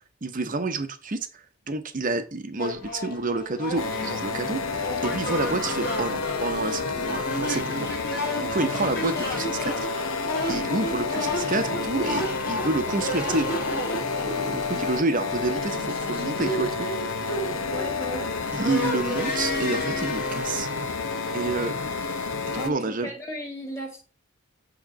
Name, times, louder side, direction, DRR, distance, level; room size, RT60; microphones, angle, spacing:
voice 1, 0.2-7.9 8.4-9.9 10.5-13.6 14.2-16.7 18.5-20.7 21.3-21.7 22.5-23.1, right 3 dB, 40° right, 0.8 m, -29 dB
sound 1, 2.6-22.2, left 1 dB, 45° left, 2.2 m, -33 dB
sound 2, 3.8-22.7, left 4 dB, 85° left, 0.9 m, -30 dB
voice 2, 17.7-18.3 22.6-24.0, equal, 15° left, 1.9 m, -35 dB
8.8 x 3.2 x 5.2 m
head